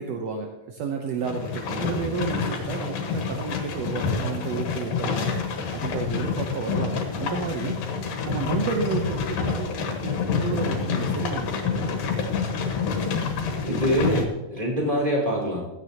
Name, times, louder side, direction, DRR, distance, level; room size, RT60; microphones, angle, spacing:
voice 1, 0.0-5.4 5.7-7.8 8.3-11.8, right 5 dB, 75° right, 3 dB, 1.6 m, -31 dB
sound 1, 1.2-14.3, left 5 dB, 85° left, 3.1 m, -28 dB
voice 2, 1.8-2.1 13.6-15.6, equal, 10° right, -3 dB, 4.3 m, -25 dB
15.5 x 13.0 x 2.9 m, 1.0 s
omnidirectional pair, 4.0 m